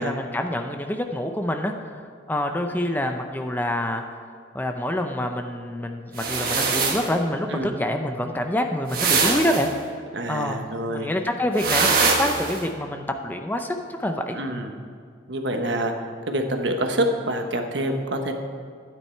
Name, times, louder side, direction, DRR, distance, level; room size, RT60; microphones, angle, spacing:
voice 1, 0.0-2.0 2.3-4.2 4.5-9.7 10.3-14.4, left 1 dB, 10° left, 5 dB, 0.5 m, -27 dB
sound 1, 6.2-7.1 8.9-9.7 11.6-12.6, right 4 dB, 50° right, 1.5 m, -22 dB
voice 2, 10.1-11.1 14.3-14.7 15.3-15.9 16.3-18.3, right 1 dB, 70° right, 4 dB, 1.1 m, -26 dB
12.0 x 9.3 x 4.5 m, 2.2 s
head